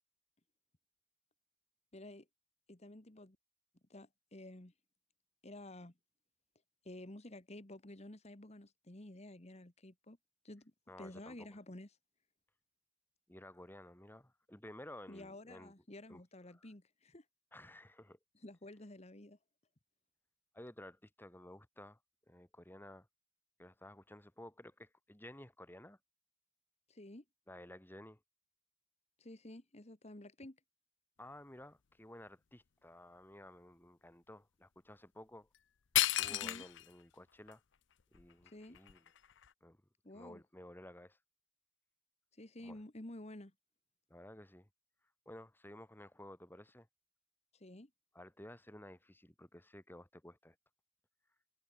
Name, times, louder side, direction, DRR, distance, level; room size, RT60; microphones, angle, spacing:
voice 1, 1.9-2.3 2.7-3.4 3.9-4.7 5.4-5.9 6.8-10.2 10.4-10.7 11.0-11.9 15.1-17.3 18.4-19.4 26.9-27.2 29.2-30.6 36.3-36.6 38.4-38.8 40.0-40.4 42.3-43.5 47.5-47.9, left 1 dB, 35° left, 1.7 m, -51 dB
voice 2, 10.9-11.6 13.3-15.7 16.1-16.2 16.5-16.7 17.5-18.2 20.5-22.0 22.3-23.1 23.6-26.0 27.5-28.2 31.2-35.5 35.9-37.6 38.1-39.0 39.6-39.8 40.1-41.2 42.6-42.8 44.1-44.7 45.3-46.9 48.1-50.6, left 1 dB, 10° left, 2.3 m, -54 dB
sound 1, 35.5-35.6 35.9-36.9 37.5-37.6 38.1-39.5, left 14 dB, 70° left, 0.6 m, -34 dB
head